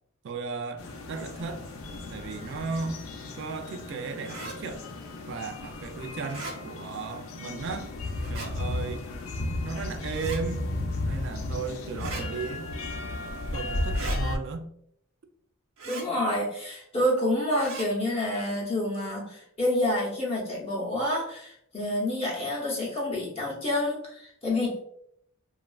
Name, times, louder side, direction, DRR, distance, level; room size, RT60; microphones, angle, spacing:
voice 1, 0.2-1.6 2.1-3.0 3.4-4.8 5.3-7.9 8.3-9.0 9.6-10.7 11.0-12.7 13.5-14.7, right 4 dB, 55° right, 8 dB, 0.3 m, -35 dB
sound 1, 0.8-14.4, left 2 dB, 75° left, 0.4 m, -34 dB
sound 2, 4.3-4.6 6.2-6.6 8.2-8.5 10.1-10.4 11.9-12.2 13.9-14.2 15.8-16.1 17.6-17.9, right 3 dB, 75° right, 0.8 m, -38 dB
voice 2, 15.8-24.8, left 1 dB, 30° left, -3 dB, 0.7 m, -28 dB
2.9 x 2.3 x 2.3 m, 0.71 s
head